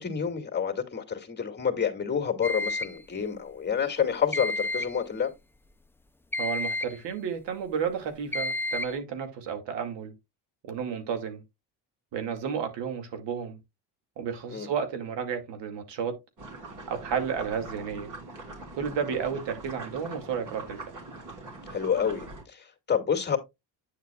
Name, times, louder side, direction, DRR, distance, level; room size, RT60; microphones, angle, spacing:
voice 1, 0.0-5.3 14.5-14.7 21.7-23.4, left 7 dB, 25° left, 2.3 m, -28 dB
sound 1, 2.4-3.0 4.3-5.0 6.3-7.0 8.3-9.0, left 2 dB, 5° left, 0.5 m, -31 dB
voice 2, 6.4-10.1 10.6-11.4 12.1-13.6 14.2-16.2 16.9-18.1 18.8-20.8, right 7 dB, 75° right, 2.4 m, -32 dB
sound 2, 16.4-22.4, right 3 dB, 45° right, 3.7 m, -43 dB
9.3 x 7.3 x 2.3 m
cardioid pair, 115°, 43 cm